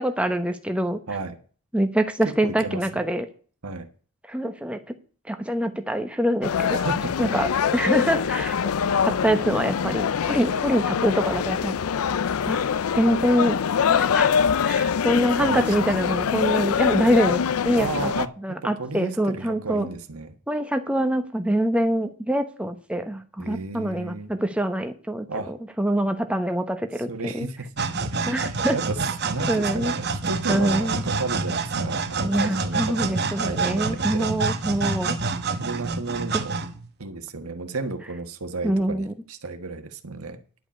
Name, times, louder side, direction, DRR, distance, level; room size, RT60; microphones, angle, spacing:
voice 1, 0.0-1.0 1.7-3.2 4.3-4.8 5.3-6.8 7.2-8.6 9.0-11.7 12.5-12.6 12.9-13.6 13.9-14.3 14.6-18.1 18.4-19.9 20.5-27.5 28.3-28.8 29.5-29.9 30.5-31.0 32.2-35.2 36.3-36.4 38.6-39.1, right 1 dB, 5° right, 0.9 m, -25 dB
voice 2, 1.1-1.4 2.2-3.0 3.6-3.9 6.7-7.1 15.4-15.9 17.7-20.4 23.4-24.3 25.3-25.5 27.1-34.3 34.8-34.9 35.6-36.6 37.0-40.4, right 3 dB, 85° right, 1.5 m, -33 dB
sound 1, 6.4-18.3, left 7 dB, 85° left, 0.4 m, -24 dB
sound 2, 27.8-37.0, right 4 dB, 50° right, 0.9 m, -27 dB
11.0 x 5.2 x 8.4 m
head